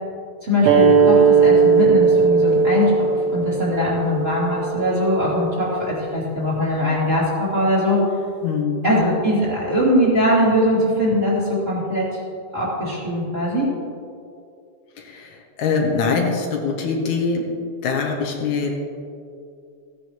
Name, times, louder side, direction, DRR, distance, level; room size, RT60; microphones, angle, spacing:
voice 1, 0.4-8.0 8.8-12.2 12.5-13.7, equal, 20° right, -7 dB, 3.0 m, -21 dB
sound 1, 0.6-5.8, right 5 dB, 65° right, 1.4 m, -17 dB
voice 2, 8.4-8.9 15.0-17.5 17.8-18.7, left 5 dB, 80° left, 1 dB, 2.5 m, -23 dB
15.5 x 10.0 x 3.1 m, 2.4 s
omnidirectional pair, 3.4 m